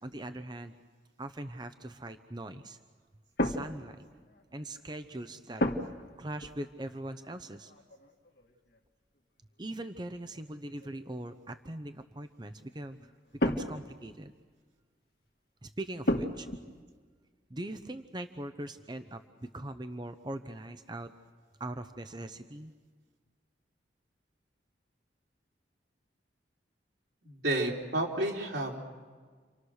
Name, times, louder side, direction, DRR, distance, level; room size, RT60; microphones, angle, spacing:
voice 1, 0.0-0.7 1.2-2.8 3.4-4.1 4.5-5.6 6.2-7.7 9.6-13.1 13.4-14.3 15.6-16.5 17.5-21.1 21.6-22.7, right 1 dB, 25° right, 8 dB, 0.8 m, -41 dB
sound 1, 3.4-4.6 5.6-6.1 6.4-6.7 7.6-8.8 9.7-9.8 10.3-11.0 12.9-14.1 16.0-16.6, equal, 55° left, 1.8 m, -33 dB
voice 2, 27.2-28.8, right 1 dB, 70° right, 0 dB, 3.8 m, -31 dB
30.0 x 25.5 x 6.5 m, 1.5 s
head